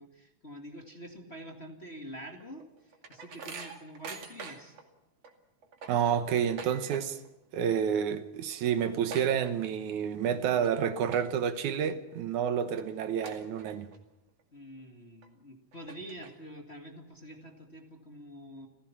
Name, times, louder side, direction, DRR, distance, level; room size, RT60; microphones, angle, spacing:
voice 1, 0.0-4.8 14.5-18.7, equal, 25° left, 1.8 m, -47 dB
sound 1, 2.4-4.8 5.2-5.3 5.6-7.3 7.6-8.0 8.3-8.4 8.6-10.0 10.5-10.7 11.1-11.6 12.1-12.2 12.8-12.9 13.2-14.0 14.4-14.5 15.2-15.3 15.7-16.6, right 4 dB, 55° right, 3.3 m, -44 dB
voice 2, 5.9-7.2 7.5-13.9, right 8 dB, 75° right, 2.5 m, -29 dB
30.0 x 16.0 x 5.8 m
omnidirectional pair, 3.6 m